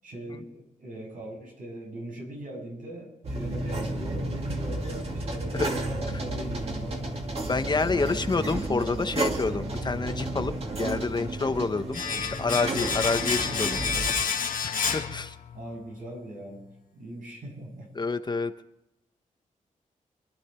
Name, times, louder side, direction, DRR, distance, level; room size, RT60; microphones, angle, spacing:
voice 1, 0.0-7.0 7.8-8.2 15.5-17.9, right 1 dB, 90° right, 0 dB, 7.1 m, -40 dB
sound 1, 3.2-14.1, right 2 dB, 50° right, 2.4 m, -32 dB
voice 2, 7.5-10.5 10.8-13.8 14.6-15.3 17.9-18.5, left 3 dB, 30° left, 9 dB, 0.9 m, -28 dB
Domestic sounds home sounds, 11.9-16.2, left 6 dB, 85° left, 1.4 m, -29 dB
25.5 x 12.0 x 4.4 m, 0.88 s
wide cardioid pair, 130°, 14 cm